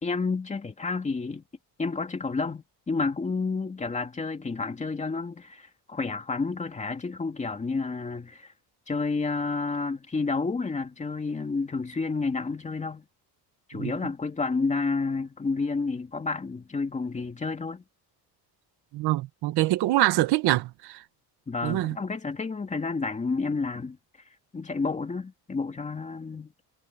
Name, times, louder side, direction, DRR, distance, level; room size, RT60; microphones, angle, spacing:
voice 1, 0.0-1.4 1.8-8.5 8.9-13.0 13.7-17.8 21.5-24.0 24.5-26.5, left 4 dB, 20° left, 2.5 m, -30 dB
voice 2, 18.9-21.0 21.6-22.0, right 16 dB, 80° right, 1.5 m, -25 dB
cardioid pair, 160°, 39 cm